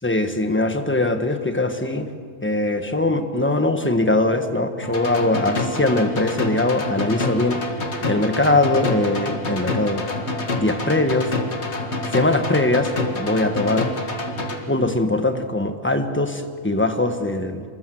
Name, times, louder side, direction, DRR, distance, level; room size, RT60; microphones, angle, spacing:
voice 1, 0.0-2.1 2.4-7.6 8.0-10.1 10.6-11.3 12.1-13.9 14.7-17.6, left 2 dB, 10° left, 7 dB, 1.4 m, -21 dB
sound 1, 4.8-14.6, left 2 dB, 55° left, 2.2 m, -27 dB
25.5 x 21.0 x 7.8 m, 2.1 s
omnidirectional pair, 1.4 m